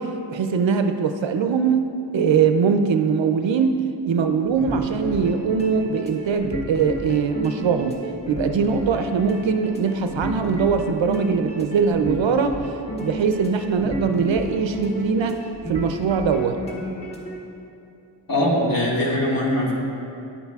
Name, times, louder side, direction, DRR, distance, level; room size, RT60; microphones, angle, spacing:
voice 1, 0.0-8.0 8.3-12.6 13.0-15.4 15.7-16.6, right 6 dB, 75° right, 7 dB, 0.5 m, -22 dB
sound 1, 4.4-17.4, equal, 15° left, 1.3 m, -31 dB
voice 2, 18.3-19.7, left 1 dB, 50° left, -4 dB, 1.8 m, -21 dB
10.0 x 8.0 x 2.3 m, 2.8 s
cardioid pair, 55°, 46 cm